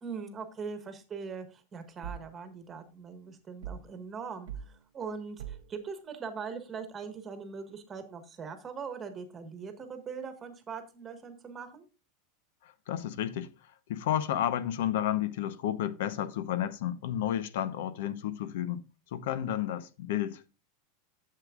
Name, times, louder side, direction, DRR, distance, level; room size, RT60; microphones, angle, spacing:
voice 1, 0.0-11.8, right 5 dB, 15° right, 1.4 m, -41 dB
sound 1, 2.0-2.3 3.6-3.9 4.5-4.7 5.4-5.7, right 8 dB, 85° right, 0.7 m, -41 dB
voice 2, 12.6-13.5 13.9-18.8 19.1-20.5, left 11 dB, 70° left, 0.9 m, -31 dB
11.5 x 7.7 x 2.4 m
supercardioid pair, 170°, 0 cm